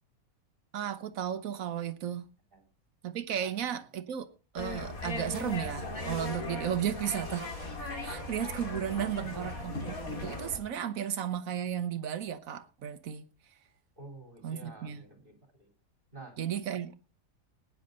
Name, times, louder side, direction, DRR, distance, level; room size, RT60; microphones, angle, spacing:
voice 1, 0.7-2.3 3.0-7.5 8.0-13.3 14.4-15.0 16.4-17.1, right 9 dB, 75° right, 1.4 m, -34 dB
sound 1, 4.6-10.6, left 2 dB, 85° left, 3.2 m, -38 dB
voice 2, 9.1-9.5 14.0-15.7 16.1-16.4, right 1 dB, 40° right, 3.7 m, -48 dB
18.5 x 9.7 x 3.9 m
omnidirectional pair, 1.5 m